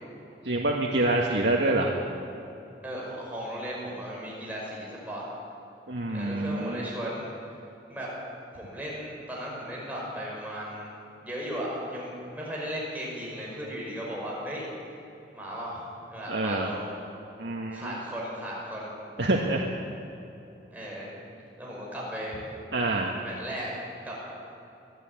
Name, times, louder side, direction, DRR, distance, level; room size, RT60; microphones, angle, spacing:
voice 1, 0.4-1.9 5.9-6.9 16.3-16.7 17.4-17.9 19.2-19.7 22.7-23.2, right 2 dB, 85° right, -1 dB, 1.7 m, -26 dB
voice 2, 2.8-5.3 6.1-7.3 7.9-8.1 8.5-10.9 11.2-14.6 15.3-15.8 16.1-16.9 17.7-19.0 20.7-21.2 21.6-22.7 23.2-23.7 24.0-24.2, equal, 10° right, -5 dB, 5.6 m, -36 dB
22.5 x 13.0 x 9.0 m, 2.9 s
head